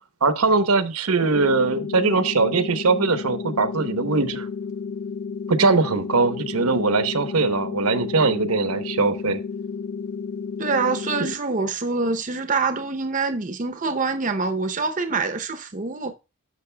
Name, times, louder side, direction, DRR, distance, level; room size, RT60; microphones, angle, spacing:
voice 1, 0.2-4.5 5.5-9.4, right 3 dB, 80° right, 0.9 m, -21 dB
sound 1, 1.3-11.3, left 5 dB, 65° left, 0.7 m, -32 dB
voice 2, 10.6-16.1, right 4 dB, 35° right, 0.7 m, -25 dB
11.5 x 6.4 x 2.2 m
head